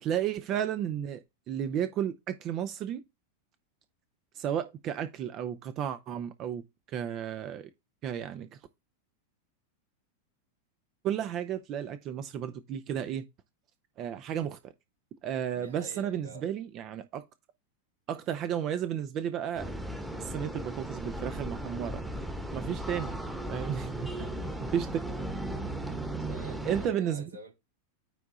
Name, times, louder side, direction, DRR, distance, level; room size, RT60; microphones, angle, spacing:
voice 1, 0.0-3.0 4.3-6.6 6.9-7.7 8.0-8.5 11.0-13.3 14.0-14.7 15.2-17.2 18.1-19.7 20.2-22.0 22.5-23.2 23.5-24.1 24.7-24.9 26.6-27.2, right 9 dB, 35° right, 0.8 m, -33 dB
voice 2, 15.5-16.5 24.0-24.9 26.3-27.5, right 2 dB, 75° right, 3.5 m, -48 dB
sound 1, 19.6-26.9, right 1 dB, 5° right, 1.3 m, -36 dB
9.5 x 3.7 x 4.1 m
figure-of-eight pair, 90°, 0 cm